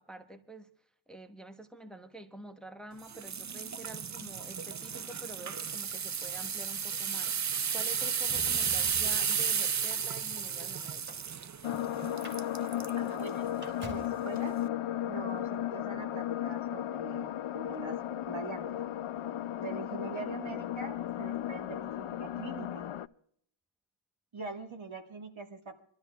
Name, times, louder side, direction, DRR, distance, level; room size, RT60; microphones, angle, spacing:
voice 1, 0.0-11.2, right 2 dB, ahead, 6 dB, 1.0 m, -48 dB
sound 1, 3.1-13.0 13.5-13.7 14.3-14.4, right 7 dB, 40° right, 0.4 m, -33 dB
Motor vehicle (road), 8.3-9.4 10.2-11.7 12.1-12.4 12.7-12.8 13.1-14.2 15.3-15.4, right 1 dB, 20° right, 2.9 m, -46 dB
sound 2, 11.6-23.1, left 11 dB, 85° left, 0.5 m, -35 dB
voice 2, 13.0-14.6 15.0-18.0 18.3-18.8 19.6-22.9 24.3-25.8, right 4 dB, 70° right, 4 dB, 1.7 m, -43 dB
28.0 x 12.0 x 2.3 m, 0.67 s
wide cardioid pair, 75°, 49 cm